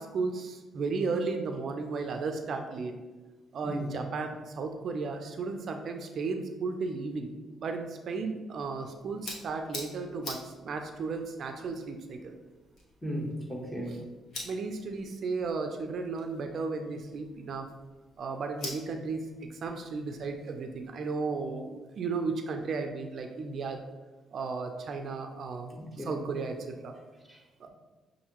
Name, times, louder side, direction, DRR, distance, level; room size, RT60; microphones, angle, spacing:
voice 1, 0.0-3.0 3.5-7.3 7.6-12.4 14.4-17.7 18.2-23.8 24.3-26.9 27.6-27.7, right 4 dB, 60° right, 5 dB, 0.4 m, -34 dB
sound 1, 8.6-20.9, left 2 dB, 60° left, 1.2 m, -48 dB
voice 2, 13.0-14.0 25.8-26.2 27.3-27.4, equal, 10° left, -1 dB, 1.0 m, -36 dB
6.5 x 2.6 x 2.9 m, 1.2 s
cardioid pair, 90°, 0 cm